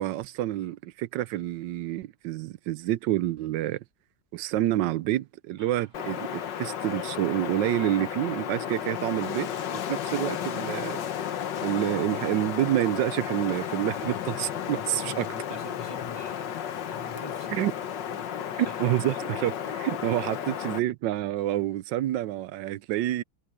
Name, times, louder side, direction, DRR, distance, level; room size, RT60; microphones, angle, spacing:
voice 1, 0.0-3.8 4.3-9.5 9.9-11.0 11.6-15.3 17.5-17.7 18.8-23.2, right 14 dB, 85° right, 1.3 m, -28 dB
sound 1, 5.6-11.4, right 2 dB, 25° right, 4.5 m, -57 dB
Wind, 5.9-20.8, left 9 dB, 80° left, 1.8 m, -33 dB
voice 2, 14.7-17.7 18.1-18.3 18.7-19.0 20.0-20.2, left 2 dB, 15° left, 1.2 m, -44 dB
omnidirectional pair, 1.9 m